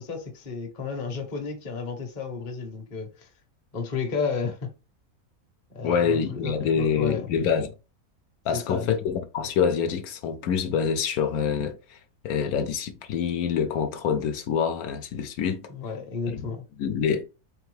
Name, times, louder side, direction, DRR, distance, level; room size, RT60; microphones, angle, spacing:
voice 1, 0.0-3.3 3.7-4.7 5.7-7.2 8.5-8.9 15.7-16.6, left 5 dB, 40° left, 0.8 m, -32 dB
voice 2, 5.8-7.7 8.4-12.0 12.2-15.6 16.3-16.5 16.8-17.2, left 7 dB, 80° left, 1.1 m, -26 dB
3.5 x 3.4 x 3.2 m
omnidirectional pair, 1.6 m